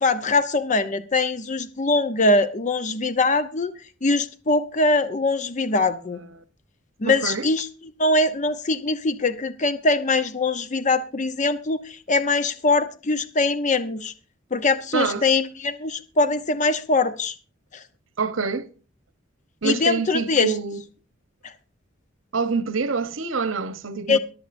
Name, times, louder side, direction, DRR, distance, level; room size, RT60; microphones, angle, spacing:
voice 1, 0.0-3.7 4.0-6.2 7.0-7.7 8.0-14.1 14.5-17.4 17.7-17.8 19.6-20.5 21.4-21.5 24.1-24.2, left 3 dB, 40° left, 0.7 m, -22 dB
voice 2, 7.0-7.5 14.9-15.3 18.2-18.7 19.6-20.8 22.3-24.2, right 4 dB, 80° right, 0.9 m, -26 dB
22.5 x 7.9 x 2.6 m
head